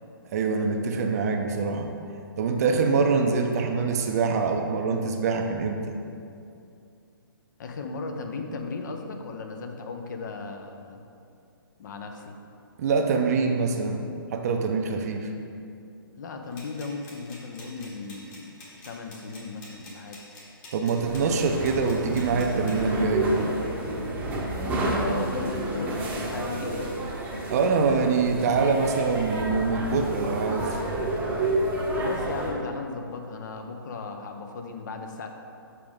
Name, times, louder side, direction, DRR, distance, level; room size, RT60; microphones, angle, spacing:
voice 1, 0.3-1.9 2.4-5.9 12.8-15.3 20.7-23.3 27.5-30.7, right 4 dB, 45° right, 4 dB, 0.6 m, -24 dB
voice 2, 7.6-11.1 11.8-12.3 16.1-18.5 18.8-20.2 25.0-26.8 31.9-35.3, left 4 dB, 50° left, 4 dB, 0.7 m, -36 dB
sound 1, 16.5-22.9, left 1 dB, 30° left, 1.3 m, -48 dB
sound 2, 21.0-32.5, right 1 dB, 10° right, 0.8 m, -29 dB
7.0 x 4.8 x 3.6 m, 2.5 s
figure-of-eight pair, 135°, 12 cm